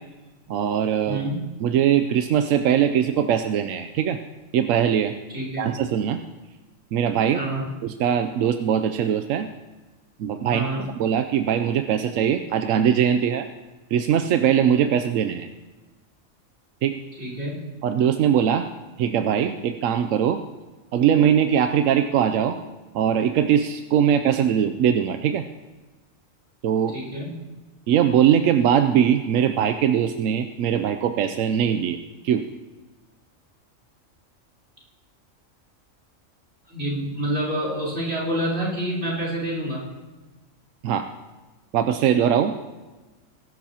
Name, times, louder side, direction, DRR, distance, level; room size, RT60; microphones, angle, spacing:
voice 1, 0.5-1.2 1.6-4.2 4.5-5.1 5.6-6.2 6.9-7.4 7.8-9.5 10.2-10.7 11.0-13.5 13.9-15.5 16.8-16.9 17.8-18.7 19.0-20.4 20.9-22.6 22.9-25.4 26.6-26.9 27.9-32.0 32.2-32.4 40.8-41.1 41.7-42.6, right 9 dB, 85° right, 8 dB, 1.0 m, -21 dB
voice 2, 1.0-1.4 5.3-5.7 7.3-7.7 10.5-10.9 17.2-17.6 26.9-27.3 36.6-39.8, right 1 dB, 50° right, -6 dB, 4.1 m, -28 dB
21.0 x 12.0 x 2.9 m, 1.2 s
omnidirectional pair, 1.3 m